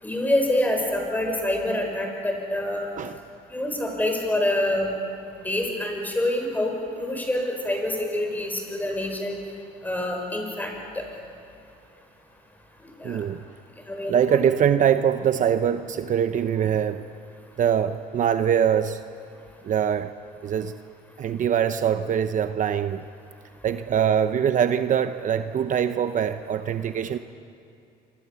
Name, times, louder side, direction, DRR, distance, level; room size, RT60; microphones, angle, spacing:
voice 1, 0.0-2.9 3.5-4.9 5.4-9.4 9.8-10.7 13.0-13.2 13.9-14.4 23.9-24.0, left 1 dB, 10° left, 2 dB, 6.4 m, -26 dB
voice 2, 13.0-13.4 14.1-17.1 17.6-19.0 19.6-20.1 20.4-20.7 21.2-23.0 23.6-27.2, right 8 dB, 50° right, 9 dB, 0.9 m, -23 dB
27.0 x 26.0 x 7.1 m, 2.5 s
cardioid pair, 110°, 17 cm